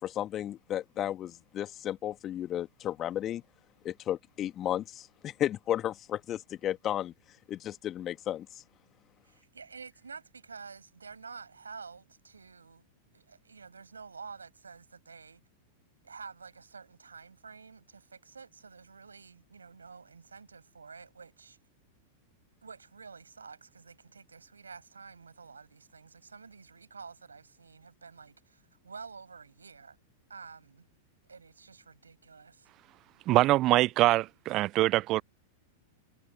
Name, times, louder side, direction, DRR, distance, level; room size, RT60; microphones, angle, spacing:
voice 1, 0.0-3.4 3.8-7.1 7.5-8.6, left 11 dB, 30° left, 1.9 m, -33 dB
voice 2, 9.2-12.9 13.1-15.4 16.0-21.6 22.6-30.0 30.3-30.8 31.3-32.7, right 5 dB, 85° right, 6.4 m, -49 dB
voice 3, 33.3-35.2, right 16 dB, 40° right, 0.4 m, -24 dB
figure-of-eight pair, 95°, 0 cm